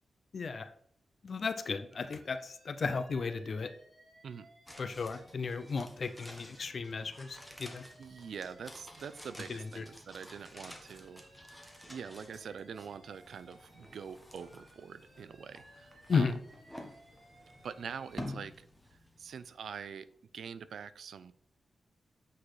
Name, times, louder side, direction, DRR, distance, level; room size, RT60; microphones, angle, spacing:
voice 1, 0.3-0.7 1.2-3.7 4.8-7.8 9.5-9.8 16.1-16.4, left 4 dB, 50° left, 10 dB, 0.5 m, -34 dB
Alarm, 1.9-5.8 6.1-9.9 10.2-14.1 14.4-18.3, right 1 dB, 30° right, 2.9 m, -60 dB
sound 1, 4.7-19.8 20.1-20.2, left 1 dB, ahead, 1.2 m, -51 dB
voice 2, 8.0-16.3 17.6-18.7 19.2-20.1 20.3-21.3, right 6 dB, 80° right, 14 dB, 0.5 m, -45 dB
8.5 x 4.1 x 4.8 m, 0.62 s
wide cardioid pair, 135°, 0 cm